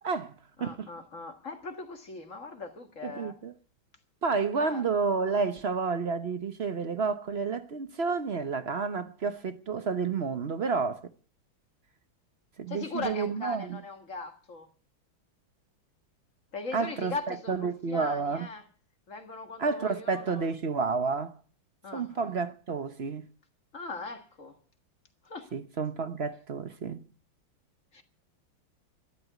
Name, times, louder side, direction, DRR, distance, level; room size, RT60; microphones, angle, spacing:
voice 1, 0.0-0.3 0.6-0.9 3.0-3.5 4.2-11.1 12.6-13.8 16.7-18.5 19.6-21.4 21.9-23.3 25.5-27.0, right 4 dB, 45° right, 0.8 m, -30 dB
voice 2, 0.6-3.4 4.3-4.9 12.7-14.7 16.5-18.6 19.1-20.5 21.8-22.3 23.7-24.6 25.2-25.5 27.9-28.0, left 3 dB, 40° left, 2.0 m, -40 dB
13.5 x 11.0 x 9.3 m
omnidirectional pair, 2.1 m